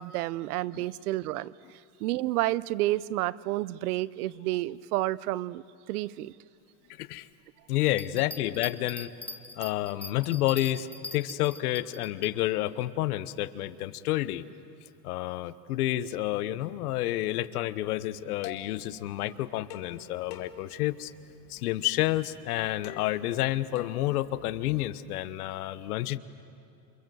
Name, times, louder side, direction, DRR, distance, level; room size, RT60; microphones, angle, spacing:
voice 1, 0.0-1.5 2.0-5.6 5.9-6.3, right 16 dB, 85° right, 20 dB, 0.8 m, -30 dB
voice 2, 7.7-9.1 9.6-14.4 15.0-21.1 21.5-26.2, left 15 dB, 85° left, 15 dB, 1.1 m, -30 dB
sound 1, 7.9-12.3, left 2 dB, 5° left, 0.6 m, -42 dB
sound 2, 18.1-24.9, left 10 dB, 40° left, 2.2 m, -48 dB
28.5 x 25.0 x 7.8 m, 2.8 s
supercardioid pair, 165°, 44 cm